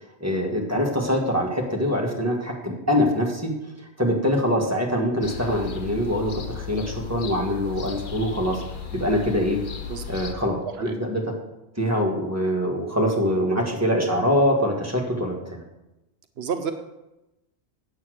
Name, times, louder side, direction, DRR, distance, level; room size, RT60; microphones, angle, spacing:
voice 1, 0.2-3.5 4.0-8.6 8.9-9.6 10.1-11.2 11.8-15.6, equal, 15° right, -1 dB, 1.7 m, -24 dB
sound 1, 5.2-10.4, left 8 dB, 50° left, 1.0 m, -35 dB
voice 2, 10.6-11.0 16.4-16.7, right 7 dB, 75° right, 7 dB, 1.0 m, -30 dB
8.6 x 7.9 x 6.4 m, 0.96 s
omnidirectional pair, 1.1 m